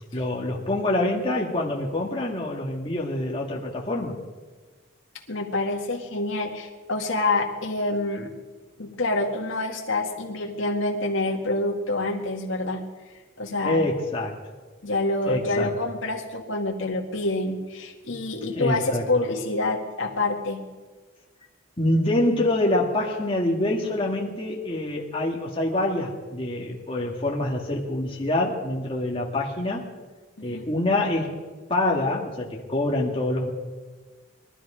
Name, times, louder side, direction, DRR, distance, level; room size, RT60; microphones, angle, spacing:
voice 1, 0.1-4.2 13.7-14.4 15.3-15.7 18.6-19.0 21.8-29.8 30.4-31.4 31.7-33.5, left 1 dB, 25° left, -2 dB, 1.8 m, -26 dB
voice 2, 5.3-8.3 8.8-12.8 13.4-13.8 14.8-20.6 30.4-30.7, left 2 dB, 75° left, 1 dB, 2.1 m, -27 dB
22.0 x 13.0 x 5.0 m, 1.3 s
head